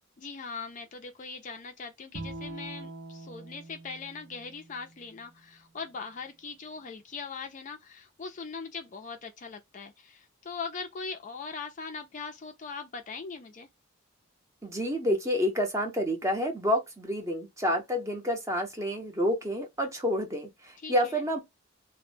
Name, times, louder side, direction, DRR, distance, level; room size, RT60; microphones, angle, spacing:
voice 1, 0.2-13.7 20.8-21.2, left 5 dB, 40° left, 0.4 m, -40 dB
Bowed string instrument, 2.1-5.4, right 2 dB, 60° right, 0.6 m, -44 dB
voice 2, 14.6-21.4, equal, 15° right, 0.6 m, -29 dB
2.1 x 2.0 x 3.1 m
head